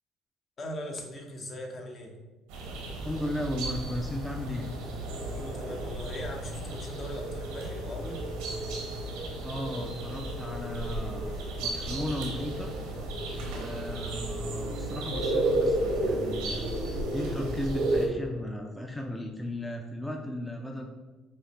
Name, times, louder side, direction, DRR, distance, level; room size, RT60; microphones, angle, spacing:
voice 1, 0.6-2.1 5.3-8.3, left 1 dB, 40° left, 2 dB, 0.7 m, -39 dB
sound 1, 2.5-18.1, right 1 dB, 90° right, 0.7 m, -32 dB
voice 2, 3.0-4.7 9.4-11.4 11.6-12.7 13.6-16.7 17.1-20.8, left 1 dB, 5° left, 2 dB, 0.3 m, -35 dB
4.8 x 2.0 x 2.9 m, 1.2 s
supercardioid pair, 75°, 0 cm